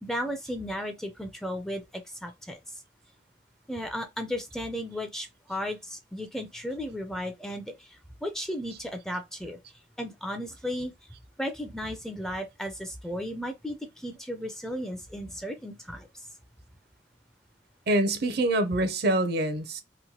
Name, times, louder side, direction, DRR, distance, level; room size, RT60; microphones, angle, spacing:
voice 1, 0.0-2.6 3.7-9.6 10.0-10.9 11.4-16.1, equal, 5° left, 0.4 m, -35 dB
voice 2, 17.9-19.8, right 1 dB, 60° right, 0.5 m, -25 dB
3.0 x 2.1 x 2.8 m
head